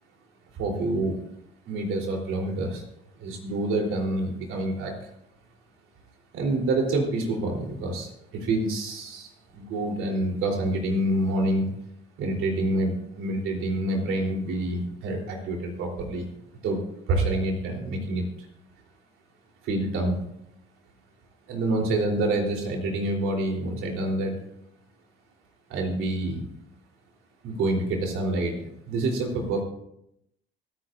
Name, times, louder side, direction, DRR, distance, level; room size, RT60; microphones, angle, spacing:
voice 1, 0.6-1.2 1.6-2.8 3.2-4.9 6.3-11.6 12.2-16.2 16.6-16.8 17.1-18.3 19.6-20.2 21.5-24.4 25.7-26.4 27.4-29.6, right 2 dB, 80° right, 0 dB, 3.5 m, -27 dB
24.0 x 9.8 x 2.6 m, 0.78 s
supercardioid pair, 70°, 21 cm